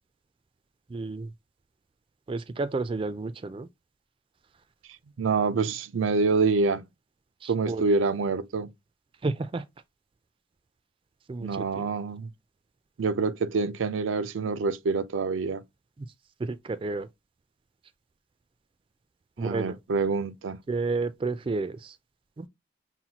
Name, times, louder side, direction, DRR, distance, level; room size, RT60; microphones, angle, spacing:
voice 1, 0.9-1.3 2.3-3.7 7.4-8.0 9.2-9.6 11.3-11.9 16.4-17.1 19.4-19.8 20.7-22.0 22.4-22.5, right 3 dB, 25° right, 0.3 m, -31 dB
voice 2, 5.2-6.9 7.5-8.7 11.4-12.3 13.0-15.6 19.4-20.6, right 4 dB, 90° right, 0.5 m, -26 dB
5.6 x 2.2 x 2.8 m
head